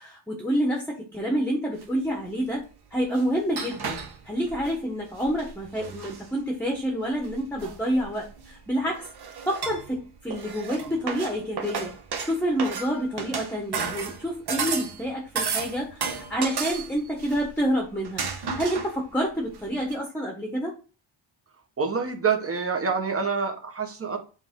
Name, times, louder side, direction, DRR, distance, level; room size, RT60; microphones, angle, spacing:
voice 1, 0.0-2.6 2.9-9.1 9.4-11.9 12.2-18.2 18.6-20.7, equal, 5° left, 1 dB, 1.2 m, -28 dB
sound 1, 1.8-1.9 2.9-4.8 5.2-6.3 7.2-8.5 8.9-10.0 10.3-15.0 15.3-17.7 18.0-19.1 19.5-19.6 19.9-20.0, right 5 dB, 50° right, 1.2 m, -33 dB
voice 2, 21.8-24.2, right 5 dB, 25° right, 4 dB, 1.3 m, -26 dB
7.9 x 3.4 x 3.7 m, 0.35 s
wide cardioid pair, 130°, 50 cm